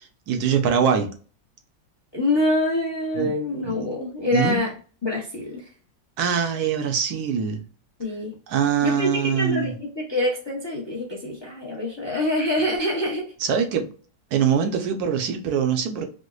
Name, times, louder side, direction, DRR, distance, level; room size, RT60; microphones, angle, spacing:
voice 1, 0.3-1.1 3.2-3.3 3.6-3.8 4.3-4.6 6.2-7.6 8.5-9.7 13.4-13.9 14.3-16.1, right 7 dB, 70° right, 5 dB, 1.1 m, -23 dB
voice 2, 2.1-4.7 5.0-5.7 8.0-8.4 8.8-13.3, left 1 dB, 30° left, -2 dB, 0.5 m, -25 dB
5.0 x 2.1 x 2.3 m, 0.39 s
omnidirectional pair, 1.9 m